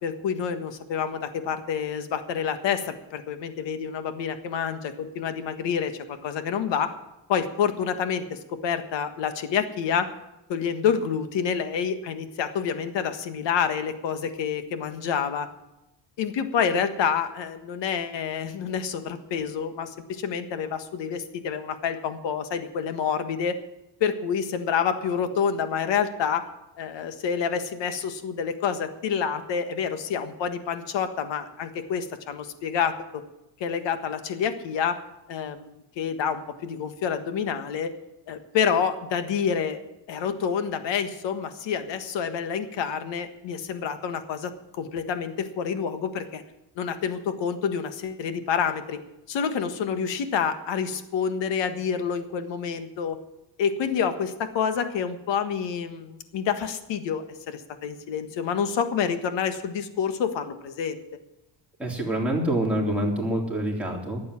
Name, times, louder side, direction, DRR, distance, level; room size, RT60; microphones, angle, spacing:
voice 1, 0.0-6.9 7.3-10.1 10.5-15.5 16.2-23.6 24.0-26.4 26.8-33.2 33.6-35.0 35.3-37.9 38.3-39.8 40.1-46.4 46.8-49.0 49.3-53.2 53.6-61.0, left 7 dB, 65° left, 9 dB, 1.6 m, -28 dB
voice 2, 61.8-64.2, right 1 dB, 5° right, -3 dB, 3.6 m, -26 dB
12.0 x 8.5 x 9.8 m, 0.92 s
cardioid pair, 125°, 47 cm